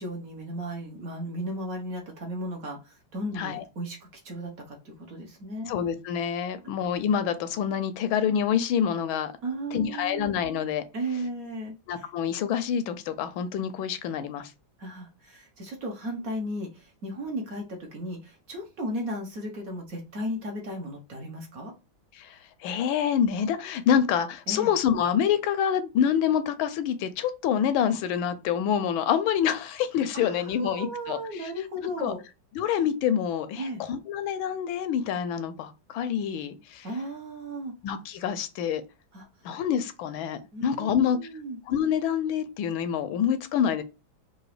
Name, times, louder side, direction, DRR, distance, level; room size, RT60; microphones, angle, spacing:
voice 1, 0.0-5.7 9.4-10.3 10.9-12.1 14.8-21.7 24.5-24.7 30.1-32.2 33.6-33.8 36.8-37.7 39.1-39.3 40.5-41.6, right 1 dB, 50° right, 1.3 m, -35 dB
voice 2, 5.7-9.3 9.7-10.8 11.9-14.5 22.2-31.5 32.0-32.1 32.6-36.9 37.8-38.8 39.4-41.2 41.7-43.8, left 8 dB, 85° left, 1.4 m, -27 dB
3.9 x 2.7 x 4.7 m
omnidirectional pair, 2.2 m